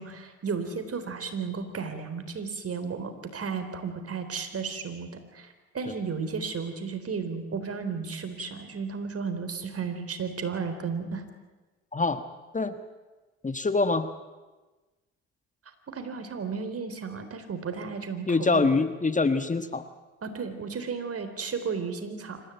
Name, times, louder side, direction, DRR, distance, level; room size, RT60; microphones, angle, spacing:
voice 1, 0.0-11.2 15.9-18.7 20.2-22.4, right 5 dB, 45° right, 8 dB, 3.9 m, -34 dB
voice 2, 11.9-12.2 12.5-12.8 13.4-14.1 18.3-19.8, left 3 dB, 25° left, 10 dB, 1.4 m, -24 dB
26.0 x 15.0 x 9.2 m, 1.2 s
hypercardioid pair, 50°, 32 cm